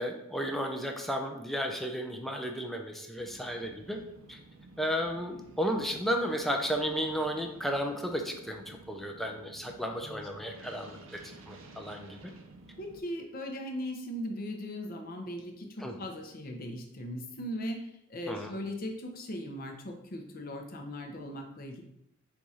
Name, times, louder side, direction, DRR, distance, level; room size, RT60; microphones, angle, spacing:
voice 1, 0.0-4.0 4.3-4.4 4.8-12.3 15.8-16.0 18.3-18.5, equal, ahead, 3 dB, 0.4 m, -33 dB
sound 1, 3.2-13.0, right 2 dB, 70° right, 0.6 m, -53 dB
voice 2, 12.8-17.8 18.1-21.8, equal, 45° left, 3 dB, 0.6 m, -38 dB
4.7 x 2.4 x 4.1 m, 0.80 s
head